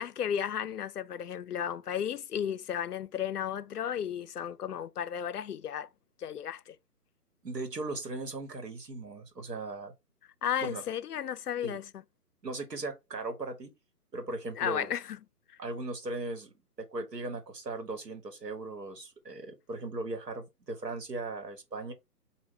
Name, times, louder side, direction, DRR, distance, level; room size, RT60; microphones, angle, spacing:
voice 1, 0.0-5.9 6.2-6.7 10.4-11.9 14.6-15.2, left 9 dB, 75° left, 0.5 m, -34 dB
voice 2, 7.4-9.9 10.6-10.8 11.6-11.8 12.4-13.7 14.1-14.9 15.6-21.9, right 2 dB, 85° right, 1.5 m, -38 dB
5.4 x 2.6 x 3.2 m
figure-of-eight pair, 155°, 48 cm